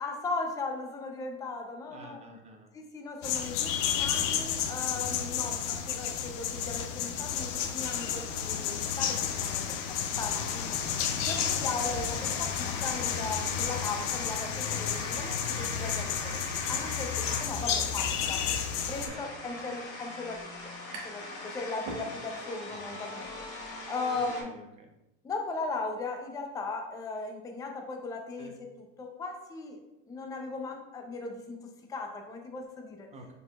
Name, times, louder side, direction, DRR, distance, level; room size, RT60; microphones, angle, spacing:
voice 1, 0.0-2.2 2.7-11.0 11.2-16.3 16.7-18.4 18.9-24.6 25.2-28.7 29.0-29.8 30.1-31.6 31.9-33.1, left 3 dB, 10° left, 3 dB, 0.4 m, -38 dB
voice 2, 1.9-2.7 10.8-11.0 12.1-12.3 15.9-16.2 17.5-17.8 19.0-19.3 19.7-19.8 22.7-23.0 24.1-24.9 28.4-28.5 33.1-33.3, right 1 dB, 15° right, 1 dB, 0.8 m, -50 dB
sound 1, 3.2-19.1, left 8 dB, 70° left, 0.6 m, -31 dB
sound 2, 7.8-24.4, left 2 dB, 40° left, 1.3 m, -42 dB
sound 3, 20.9-21.3 21.7-22.6, right 2 dB, 75° right, 1.1 m, -42 dB
4.5 x 3.8 x 2.3 m, 0.96 s
supercardioid pair, 110°, 38 cm